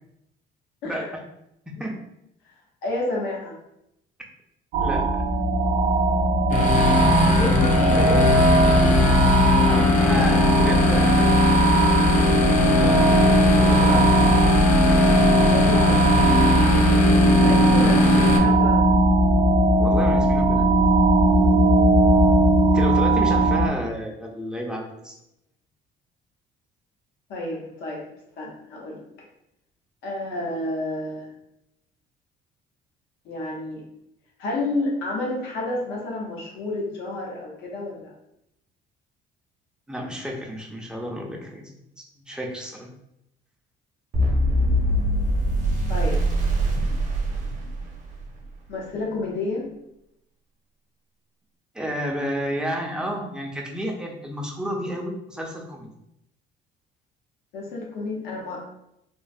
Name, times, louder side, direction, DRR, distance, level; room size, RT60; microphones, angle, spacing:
voice 1, 0.8-1.2 1.8-1.9 4.8-5.2 9.7-11.4 12.8-13.1 13.5-14.4 19.8-20.8 22.7-25.2 39.9-41.7 42.0-42.9 51.7-55.9, equal, 5° right, 0 dB, 0.5 m, -31 dB
voice 2, 2.8-3.6 7.2-8.4 10.2-10.4 15.4-16.4 17.4-19.0 27.3-28.0 28.4-29.0 30.0-31.3 33.2-33.8 34.4-38.1 45.9-46.2 48.7-49.7 57.5-58.7, left 2 dB, 85° left, -2 dB, 0.8 m, -30 dB
sound 1, 4.7-23.7, right 1 dB, 80° right, 0.4 m, -18 dB
sound 2, 6.5-18.4, left 3 dB, 50° left, 0.5 m, -21 dB
sound 3, 44.1-48.3, right 1 dB, 50° right, 0.7 m, -23 dB
3.0 x 2.0 x 2.5 m, 0.81 s
cardioid pair, 110°, 17 cm